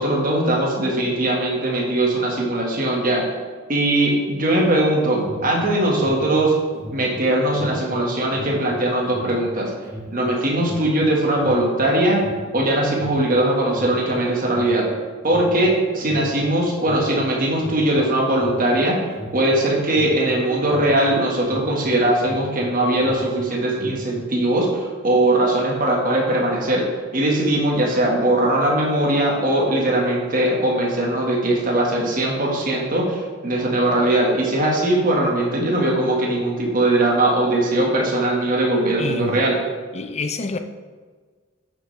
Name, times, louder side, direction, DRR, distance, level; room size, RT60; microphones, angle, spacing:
voice 1, 0.0-3.2 3.7-6.6 6.9-9.7 10.1-12.2 12.5-14.9 15.2-19.0 19.3-26.9 27.1-39.5, right 1 dB, 40° right, 1.6 m, -20 dB
Alarm, 5.2-22.7 22.9-24.2, right 1 dB, 5° right, 1.8 m, -37 dB
voice 2, 39.0-39.4 39.9-40.6, left 4 dB, 30° left, 0.4 m, -27 dB
8.4 x 7.4 x 3.3 m
head